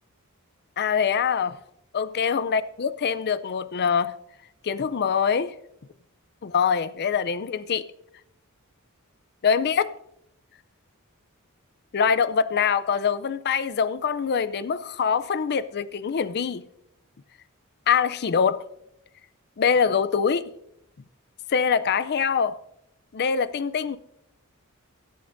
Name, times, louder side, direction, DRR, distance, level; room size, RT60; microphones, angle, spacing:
voice 1, 0.8-1.6 1.9-4.1 4.6-5.5 6.4-7.8 9.4-9.9 11.9-16.6 17.9-18.6 19.6-20.4 21.5-22.6 23.1-24.0, left 6 dB, 50° left, 0.5 m, -24 dB
17.0 x 12.0 x 2.6 m
head